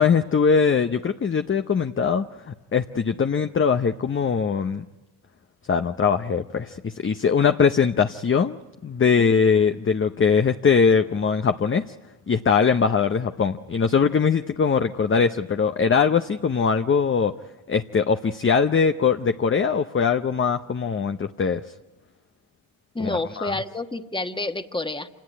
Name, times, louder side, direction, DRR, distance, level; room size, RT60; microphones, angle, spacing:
voice 1, 0.0-4.8 5.7-8.6 8.8-11.9 12.3-17.3 17.7-21.6 23.0-23.5, left 6 dB, 25° left, 8 dB, 0.7 m, -21 dB
voice 2, 22.9-25.1, left 2 dB, 10° left, 8 dB, 1.3 m, -29 dB
26.5 x 18.0 x 9.6 m, 1.1 s
supercardioid pair, 65°, 45 cm